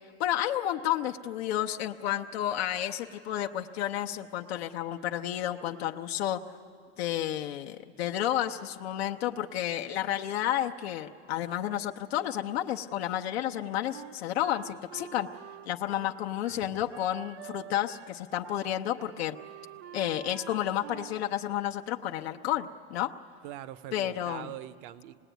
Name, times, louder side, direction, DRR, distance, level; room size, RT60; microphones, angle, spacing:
voice 1, 0.2-6.4 7.0-15.3 15.6-19.4 19.9-23.1 23.9-24.5, left 12 dB, 70° left, 4 dB, 0.9 m, -31 dB
Wind instrument woodwind instrument, 13.9-18.2 18.4-18.6 18.9-21.2, right 12 dB, 90° right, 0.7 m, -47 dB
voice 2, 23.4-25.2, right 13 dB, 50° right, 16 dB, 0.7 m, -43 dB
25.5 x 19.5 x 9.2 m, 2.5 s
supercardioid pair, 155°, 32 cm